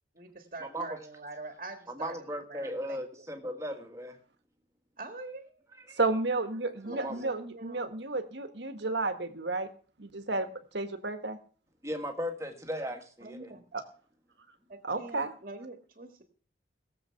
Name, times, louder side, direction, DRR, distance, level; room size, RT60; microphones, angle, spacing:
voice 1, 0.2-3.3 5.0-5.6 6.8-7.9 13.2-13.6 14.7-16.2, right 2 dB, 45° right, 6 dB, 1.6 m, -44 dB
voice 2, 1.9-4.2 5.9-6.0 6.9-7.2 11.8-13.5, equal, 15° right, 5 dB, 1.6 m, -37 dB
voice 3, 6.0-9.7 10.0-11.4 13.7-13.8 14.8-15.3, right 3 dB, 70° right, 8 dB, 1.5 m, -32 dB
17.5 x 7.6 x 5.8 m, 0.43 s
head